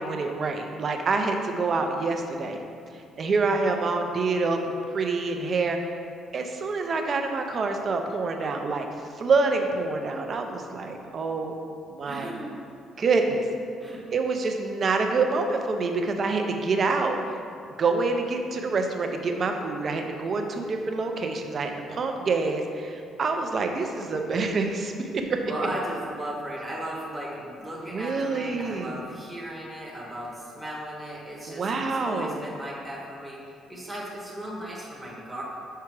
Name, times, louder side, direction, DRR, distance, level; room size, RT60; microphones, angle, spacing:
voice 1, 0.0-2.6 3.2-5.8 6.3-8.9 9.2-11.5 11.9-12.3 13.0-13.4 14.1-17.2 17.8-25.4 27.9-29.0 31.5-32.4, right 3 dB, 35° right, 4 dB, 0.6 m, -26 dB
voice 2, 12.0-12.5 13.8-14.0 25.5-33.4 33.7-35.4, right 1 dB, ahead, -5 dB, 1.0 m, -36 dB
5.6 x 4.8 x 4.7 m, 2.4 s
cardioid pair, 150°, 0 cm